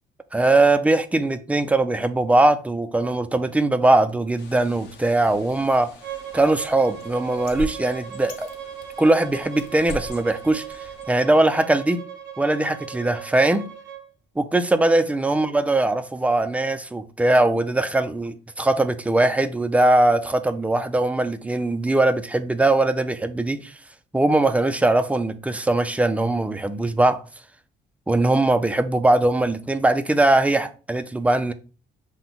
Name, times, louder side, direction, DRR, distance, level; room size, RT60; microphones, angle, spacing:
voice 1, 0.3-5.9 6.3-8.5 9.0-10.6 11.1-12.0 12.4-13.7 14.4-23.8 24.1-27.2 28.1-31.5, right 2 dB, 5° right, 0.4 m, -20 dB
Bird, 4.4-11.0, left 3 dB, 65° left, 1.0 m, -41 dB
Bowed string instrument, 6.0-14.0, right 9 dB, 75° right, 1.0 m, -38 dB
5.9 x 2.2 x 3.7 m
cardioid pair, 130°, 19 cm